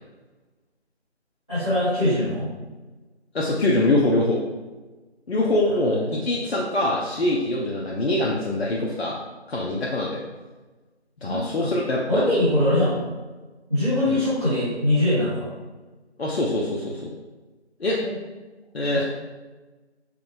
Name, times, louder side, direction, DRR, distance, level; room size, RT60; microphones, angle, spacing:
voice 1, 1.5-2.5 5.7-6.1 11.2-11.7 12.1-13.0 13.7-15.5 18.0-18.1 18.9-19.0, left 1 dB, 5° left, -19 dB, 1.0 m, -23 dB
voice 2, 3.3-4.4 5.3-9.1 9.5-10.2 11.2-12.2 14.1-14.2 16.2-17.1 17.8-18.0 18.7-19.0, left 1 dB, 65° left, -3 dB, 0.6 m, -23 dB
4.6 x 2.2 x 3.4 m, 1.2 s
figure-of-eight pair, 165°, 34 cm